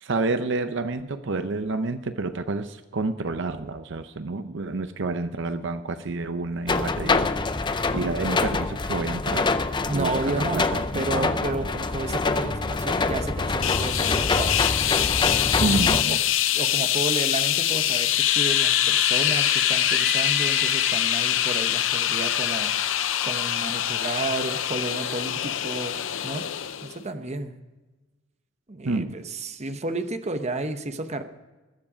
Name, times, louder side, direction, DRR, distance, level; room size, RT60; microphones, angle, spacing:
voice 1, 0.0-7.6 7.9-9.5 9.9-11.6 15.6-16.2 28.8-29.1, right 3 dB, 65° right, 10 dB, 0.7 m, -29 dB
sound 1, 6.7-16.0, left 3 dB, 20° left, 0.5 m, -25 dB
voice 2, 9.9-10.6 10.9-14.8 15.2-15.7 16.1-16.2 16.5-26.0 26.2-26.4 26.8-27.5 28.7-31.2, right 2 dB, 35° right, 8 dB, 0.9 m, -32 dB
sound 2, 13.6-27.0, left 12 dB, 65° left, 0.6 m, -24 dB
Screaming / Screech, 18.0-21.4 22.4-23.5, right 1 dB, 10° right, 1.7 m, -38 dB
20.5 x 7.6 x 5.0 m, 1.2 s
head